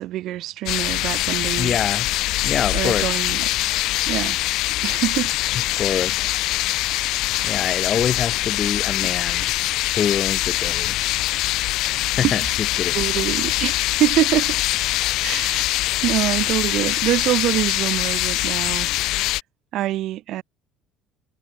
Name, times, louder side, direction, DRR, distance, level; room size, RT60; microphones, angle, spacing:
voice 1, 0.0-1.8 2.7-3.5 4.1-4.4 4.8-5.3 9.0-9.1 12.2-12.3 12.9-14.6 15.2-15.7 16.0-18.9 19.7-20.4, right 14 dB, 65° right, 6.9 m, -25 dB
sound 1, 0.7-19.4, left 17 dB, 70° left, 4.6 m, -23 dB
voice 2, 1.6-2.1 2.4-3.2 5.8-6.2 7.4-9.5 9.9-10.9 11.8-12.4 12.8-13.0, left 8 dB, 45° left, 3.3 m, -25 dB
supercardioid pair, 75°, 0 cm